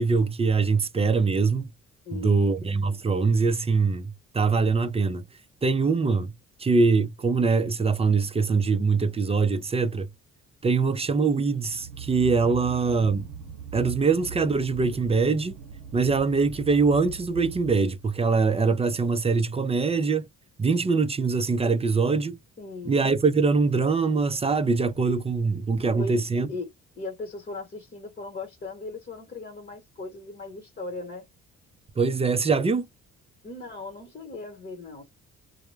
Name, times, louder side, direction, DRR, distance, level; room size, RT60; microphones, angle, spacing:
voice 1, 0.0-1.7 2.1-5.2 5.6-6.3 6.6-10.1 10.6-13.3 13.7-15.6 15.9-20.3 20.6-22.4 22.9-26.5 32.0-32.9, right 4 dB, 20° right, 0.4 m, -23 dB
voice 2, 2.1-2.4 22.6-23.0 26.0-26.2 26.5-26.7 26.9-31.3 33.4-35.1, left 2 dB, 30° left, 1.1 m, -38 dB
sound 1, 11.6-18.2, right 6 dB, 90° right, 0.6 m, -40 dB
2.1 x 2.0 x 3.1 m
cardioid pair, 90°, 30 cm